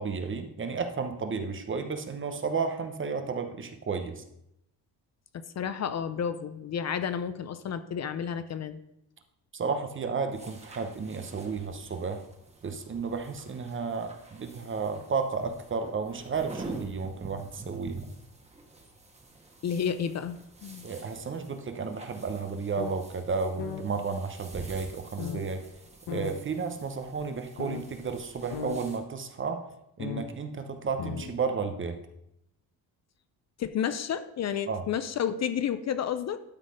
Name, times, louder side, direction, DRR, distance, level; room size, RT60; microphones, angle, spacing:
voice 1, 0.0-4.2 9.5-12.2 12.6-18.1 20.8-25.6 26.1-29.6 30.0-32.0 34.7-34.8, right 5 dB, 35° right, 7 dB, 0.9 m, -32 dB
voice 2, 5.6-8.8 19.6-20.9 33.6-36.4, left 8 dB, 45° left, 12 dB, 0.5 m, -31 dB
sound 1, 10.3-29.0, right 2 dB, 15° right, 1.5 m, -48 dB
sound 2, 22.8-22.9 23.3-23.4 23.6-23.8 25.2-25.4 26.1-26.3 27.0-27.1 27.6-27.8 28.2-28.3 28.5-28.8 30.0-30.3 30.9-31.3, left 6 dB, 80° left, 1.2 m, -35 dB
12.0 x 4.1 x 4.9 m, 0.81 s
cardioid pair, 100°, 37 cm